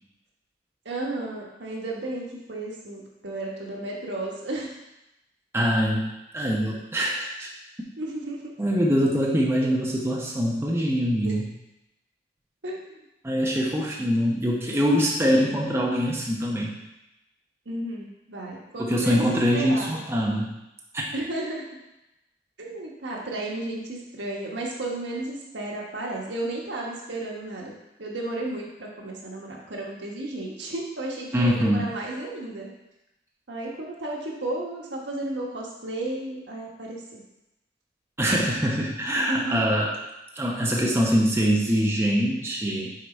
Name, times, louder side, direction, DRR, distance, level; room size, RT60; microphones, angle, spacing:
voice 1, 0.8-4.8 8.0-8.6 11.2-11.3 12.6-13.0 17.6-20.0 21.1-21.6 22.6-27.7 28.0-32.7 33.5-37.2 39.3-39.6, right 2 dB, 85° right, -2 dB, 1.4 m, -33 dB
voice 2, 5.5-6.1 6.3-7.5 8.6-11.5 13.2-16.8 18.8-20.5 20.9-21.1 31.3-31.9 38.2-39.9 40.3-42.9, equal, 15° right, -3 dB, 0.8 m, -23 dB
6.5 x 3.9 x 4.4 m, 0.92 s
head